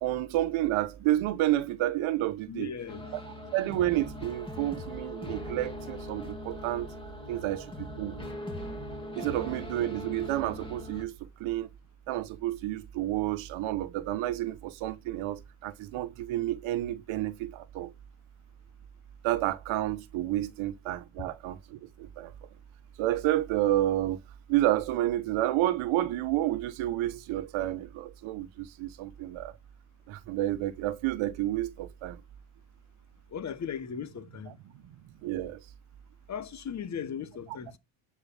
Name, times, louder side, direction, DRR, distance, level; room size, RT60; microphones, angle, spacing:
voice 1, 0.0-2.7 3.5-6.9 7.3-8.2 9.2-11.7 12.1-17.9 19.2-22.3 23.0-24.2 24.5-29.5 30.1-32.2 35.2-35.6, right 14 dB, 75° right, 1.2 m, -30 dB
voice 2, 2.5-3.0 33.3-34.6 36.3-37.8, left 7 dB, 35° left, 1.3 m, -37 dB
sound 1, 2.9-11.0, left 1 dB, 10° left, 3.2 m, -40 dB
11.0 x 4.9 x 7.1 m
cardioid pair, 125°, 48 cm